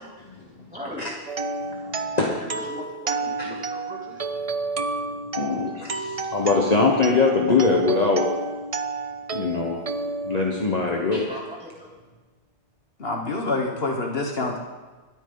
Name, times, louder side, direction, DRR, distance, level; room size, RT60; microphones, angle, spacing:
voice 1, 0.7-1.2 2.4-4.2 6.4-6.5 11.3-11.9, left 1 dB, 5° right, -4 dB, 3.0 m, -39 dB
sound 1, 1.3-11.2, right 3 dB, 40° right, 0.6 m, -31 dB
voice 2, 1.8-2.3 3.4-3.5 5.3-8.3 9.3-9.8 10.2-11.2, left 4 dB, 35° left, -1 dB, 1.4 m, -22 dB
voice 3, 13.0-14.6, left 2 dB, 55° left, 1 dB, 1.5 m, -27 dB
26.0 x 9.1 x 4.0 m, 1.3 s
omnidirectional pair, 1.2 m